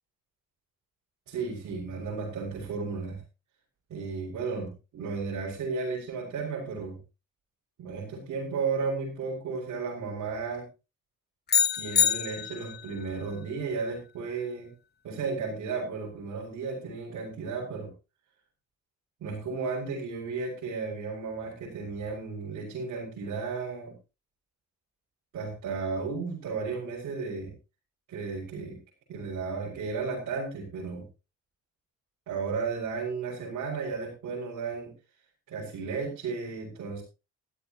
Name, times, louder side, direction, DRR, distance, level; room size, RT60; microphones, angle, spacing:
voice 1, 1.3-3.2 3.9-7.0 7.8-10.7 11.7-14.7 15.0-17.9 19.2-23.9 25.3-27.5 28.1-28.8 29.1-31.0 32.3-34.9 35.5-37.0, right 4 dB, 75° right, -5 dB, 6.0 m, -34 dB
sound 1, 11.5-12.9, left 8 dB, 35° left, 0.7 m, -25 dB
17.0 x 14.0 x 3.0 m, 0.30 s
cardioid pair, 90°, 30 cm